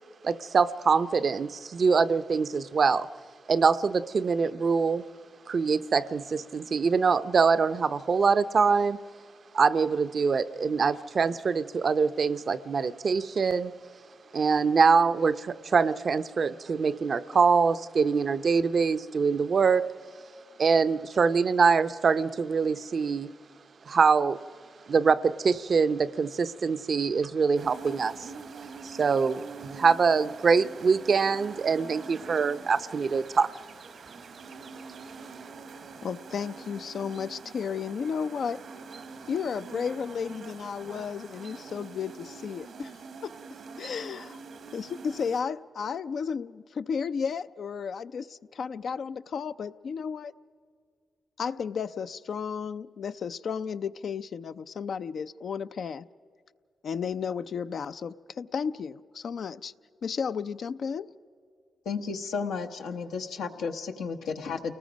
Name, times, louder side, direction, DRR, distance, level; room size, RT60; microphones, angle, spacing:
voice 1, 0.2-3.1 3.5-5.0 5.5-9.0 9.5-13.7 14.3-19.9 20.6-23.3 23.9-24.4 24.9-28.3 28.8-33.5, right 5 dB, 60° right, 0.6 m, -24 dB
sound 1, 27.5-45.4, right 4 dB, 75° right, 1.1 m, -45 dB
voice 2, 36.0-38.6 39.3-42.9 43.2-43.3 43.8-44.4 44.7-50.3 51.4-56.0 56.8-59.7 60.0-61.1, left 6 dB, 70° left, 0.5 m, -33 dB
voice 3, 61.8-64.7, left 5 dB, 90° left, 1.0 m, -33 dB
29.0 x 19.5 x 5.2 m
cardioid pair, 55°, 0 cm